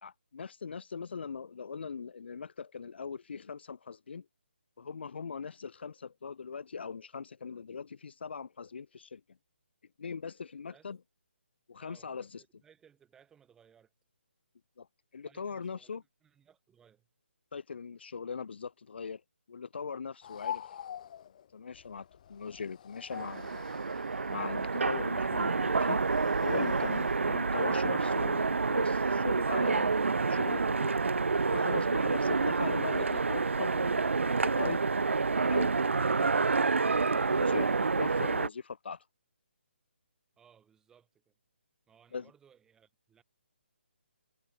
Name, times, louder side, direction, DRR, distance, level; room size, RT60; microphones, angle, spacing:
voice 1, 0.0-4.2 4.8-9.2 10.0-11.0 11.7-12.3 14.8-14.9 15.1-16.0 17.5-19.2 19.5-20.7 21.5-23.6 24.3-26.0 26.4-30.9 31.5-34.8 37.3-39.0 42.1-42.3, left 5 dB, 60° left, 1.4 m, -40 dB
voice 2, 11.8-13.9 15.2-17.1 40.4-41.3 41.9-43.2, right 8 dB, 10° right, 5.8 m, -63 dB
sound 1, 20.2-27.2, left 9 dB, 40° left, 3.7 m, -46 dB
Train, 23.1-38.5, right 4 dB, 90° right, 0.6 m, -28 dB
hypercardioid pair, 160°, 6 cm